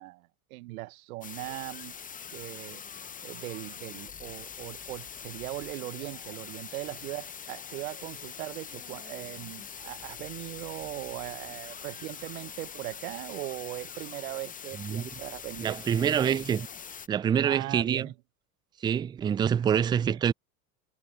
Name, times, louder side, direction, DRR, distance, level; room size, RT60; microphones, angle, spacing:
voice 1, 0.0-1.9 2.3-2.8 3.2-16.0 17.4-18.1 20.1-20.2, right 20 dB, 65° right, 1.3 m, -39 dB
sound 1, 1.2-17.1, left 7 dB, 20° left, 0.8 m, -43 dB
voice 2, 14.8-15.1 15.6-16.7 17.1-18.1 18.8-20.3, right 8 dB, 10° right, 0.3 m, -26 dB
hypercardioid pair, 85°, 45 cm